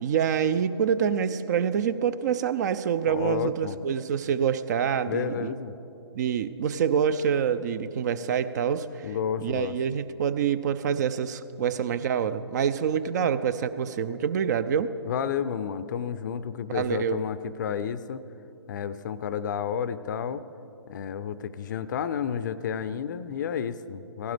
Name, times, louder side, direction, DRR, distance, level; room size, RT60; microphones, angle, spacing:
voice 1, 0.0-5.5 6.1-9.2 9.4-14.9 16.7-17.2, right 7 dB, 40° right, 14 dB, 0.5 m, -26 dB
voice 2, 3.1-3.8 5.1-5.7 9.0-9.8 15.1-18.2 18.7-20.4 20.9-24.3, left 8 dB, 45° left, 14 dB, 0.5 m, -31 dB
17.5 x 16.0 x 3.4 m, 2.9 s
figure-of-eight pair, 135°, 14 cm